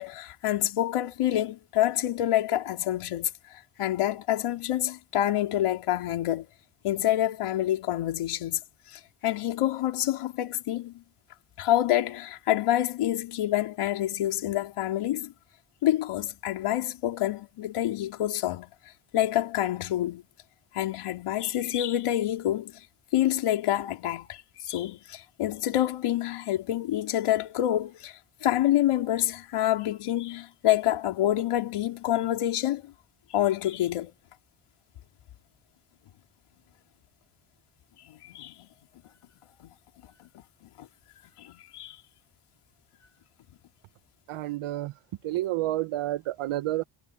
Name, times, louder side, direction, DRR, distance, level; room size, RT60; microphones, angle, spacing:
voice 1, 0.0-6.5 6.8-8.6 8.9-11.0 11.6-15.3 15.8-18.7 19.1-20.2 20.7-22.7 23.1-32.9 33.3-34.1 38.1-38.7 39.6-39.7 40.2-40.4 40.8-40.9 41.4-42.0, left 13 dB, 90° left, 3.4 m, -27 dB
voice 2, 44.3-44.9 45.2-46.8, right 15 dB, 80° right, 1.0 m, -29 dB
cardioid pair, 85°, 50 cm